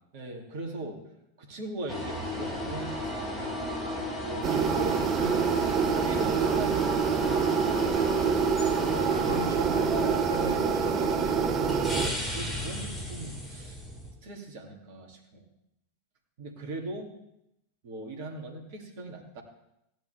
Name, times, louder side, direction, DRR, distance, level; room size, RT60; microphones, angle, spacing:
voice 1, 0.1-1.0 1.4-3.6 4.2-8.0 12.0-13.8 14.2-15.4 16.4-17.1 17.8-19.4, right 2 dB, 50° right, 1 dB, 2.9 m, -40 dB
sound 1, 1.9-14.1, left 1 dB, 10° left, 4.2 m, -35 dB
sound 2, 4.4-12.1, right 6 dB, 30° right, 1.0 m, -26 dB
voice 2, 8.8-11.8, equal, 85° left, -4 dB, 6.2 m, -38 dB
16.0 x 10.5 x 3.6 m, 0.82 s
figure-of-eight pair, 90°, 0 cm